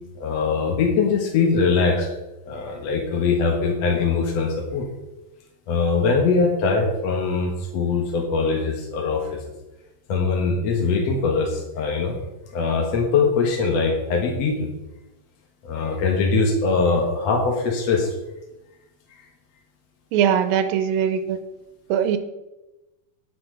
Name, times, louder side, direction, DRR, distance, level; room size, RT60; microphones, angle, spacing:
voice 1, 0.2-2.1 2.5-4.9 5.7-9.4 10.1-12.2 12.5-14.7 15.6-18.2, left 4 dB, 60° left, 1 dB, 2.1 m, -22 dB
voice 2, 20.1-21.4 21.9-22.2, right 8 dB, 90° right, 10 dB, 2.4 m, -21 dB
9.1 x 9.0 x 5.1 m, 1.0 s
omnidirectional pair, 4.1 m